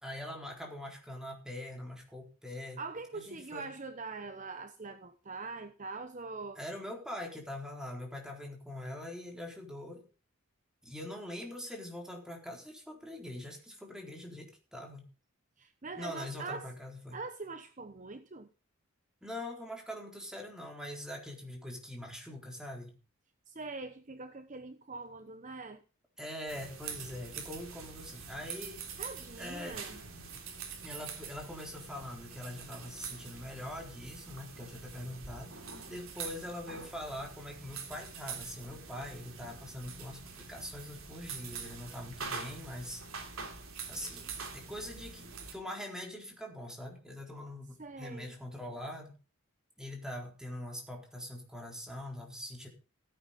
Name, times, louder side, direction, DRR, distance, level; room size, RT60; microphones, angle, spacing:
voice 1, 0.0-2.8 3.1-3.7 6.6-10.0 10.8-15.1 16.0-17.2 19.2-23.0 26.2-29.0 29.4-29.8 30.1-30.4 30.8-35.5 35.9-43.0 43.9-49.1 49.8-52.7, left 1 dB, 5° right, 4.1 m, -43 dB
voice 2, 2.8-6.6 15.6-16.7 17.1-18.5 23.5-25.8 29.0-30.0 47.8-48.4, right 3 dB, 35° right, 0.9 m, -43 dB
sound 1, 26.5-45.5, right 5 dB, 75° right, 3.4 m, -45 dB
16.5 x 9.1 x 4.1 m
head